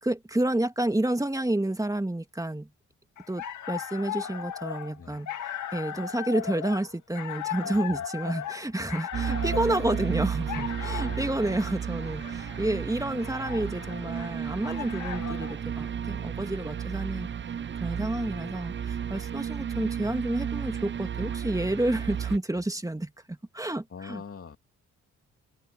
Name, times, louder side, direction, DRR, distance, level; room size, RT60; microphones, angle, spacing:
voice 1, 0.0-2.7 3.3-17.3 17.8-24.2, right 1 dB, 10° right, 2.3 m, -30 dB
sound 1, 3.2-15.6, left 10 dB, 65° left, 2.5 m, -37 dB
sound 2, 9.1-22.4, right 8 dB, 35° right, 0.7 m, -33 dB
voice 2, 11.1-11.6 22.5-22.6 23.9-24.6, left 6 dB, 45° left, 3.0 m, -44 dB
hypercardioid pair, 50°, 32 cm